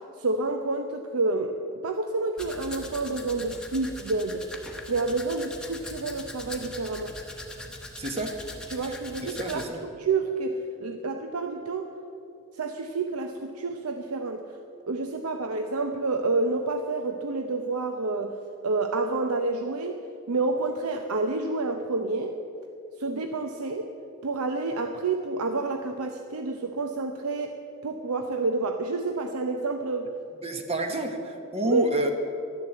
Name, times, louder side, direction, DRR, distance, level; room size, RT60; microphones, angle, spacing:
voice 1, 0.0-1.6 1.8-4.5 4.9-7.1 8.7-9.7 10.0-11.9 12.5-14.4 14.9-18.4 18.6-20.0 20.3-22.4 23.0-23.9 24.2-27.5 27.8-30.1 31.6-31.9, right 3 dB, 85° right, 5 dB, 0.7 m, -29 dB
Domestic sounds home sounds, 2.4-9.7, left 2 dB, 5° left, 1.0 m, -41 dB
voice 2, 8.0-8.4 8.8-9.0 9.2-9.8 30.4-32.1, right 1 dB, 25° right, 5 dB, 1.2 m, -30 dB
12.0 x 10.5 x 7.9 m, 2.7 s
head